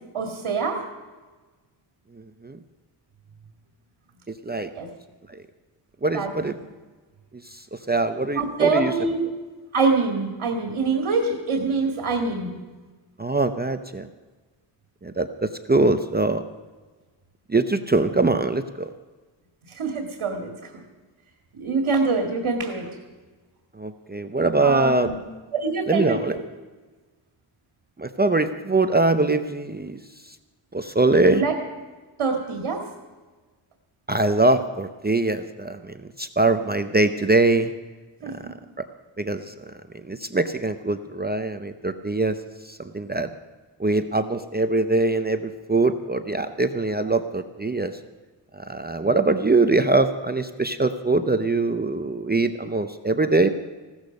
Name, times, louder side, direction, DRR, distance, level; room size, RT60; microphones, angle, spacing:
voice 1, 0.1-0.8 4.8-4.9 6.1-6.3 8.3-9.3 9.7-12.5 19.7-20.7 21.5-22.9 24.6-25.2 25.5-26.2 31.3-31.5 32.2-32.8 38.2-38.3, right 4 dB, 85° right, 2 dB, 2.1 m, -24 dB
voice 2, 6.0-6.5 7.5-8.9 13.2-14.1 15.0-16.4 17.5-18.9 23.8-25.1 25.9-26.4 28.0-30.0 30.7-31.4 34.1-37.7 39.2-39.5 40.1-42.4 42.6-43.3 43.8-47.9 48.5-53.5, right 2 dB, 20° right, 8 dB, 0.6 m, -22 dB
16.0 x 13.5 x 5.2 m, 1.3 s
wide cardioid pair, 135°, 48 cm